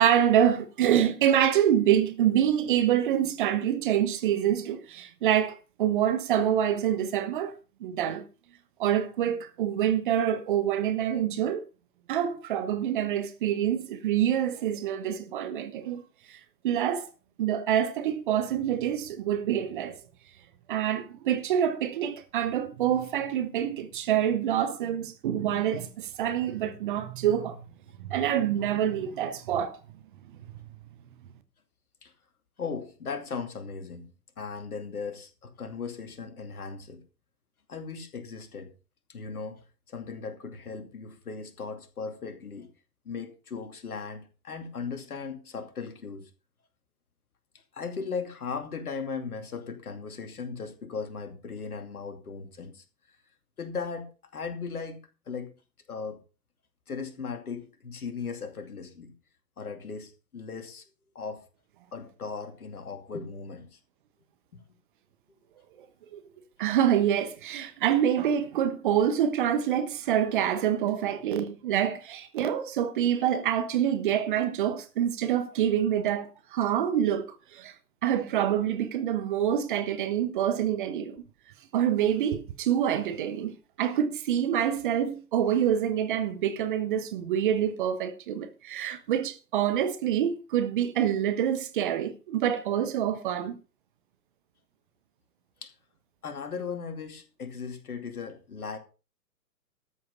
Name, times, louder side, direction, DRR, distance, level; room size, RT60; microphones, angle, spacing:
voice 1, 0.0-7.5 7.8-8.2 8.8-11.7 12.1-16.0 16.3-17.1 17.4-20.0 20.7-27.6 28.0-29.8 66.1-66.2 66.6-77.7 78.0-81.2 81.7-93.5, right 10 dB, 30° right, 1.2 m, -26 dB
voice 2, 32.6-34.1 34.4-37.0 37.7-38.7 39.1-42.7 43.0-46.3 47.7-52.8 53.6-55.0 55.3-55.5 55.9-56.2 56.9-59.1 59.6-60.8 61.1-61.5 61.9-63.8 95.6-95.7 96.2-98.8, left 5 dB, 60° left, 2.6 m, -37 dB
13.0 x 7.9 x 5.1 m
figure-of-eight pair, 120°, 49 cm